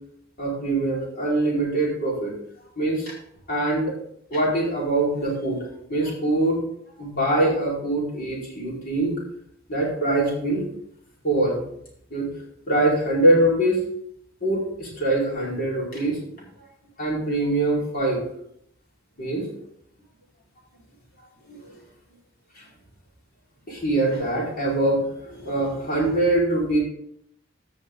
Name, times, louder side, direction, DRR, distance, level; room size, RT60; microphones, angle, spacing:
voice 1, 0.4-2.3 2.8-3.1 3.5-3.9 4.3-5.6 5.9-6.6 7.0-9.2 9.7-10.6 11.2-11.6 12.1-12.3 12.7-13.8 14.4-16.2 17.0-18.2 19.2-19.4 21.5-21.8 22.5-22.6 23.7-26.8, right 1 dB, 45° left, -4 dB, 4.5 m, -23 dB
15.5 x 6.2 x 3.8 m, 0.71 s
head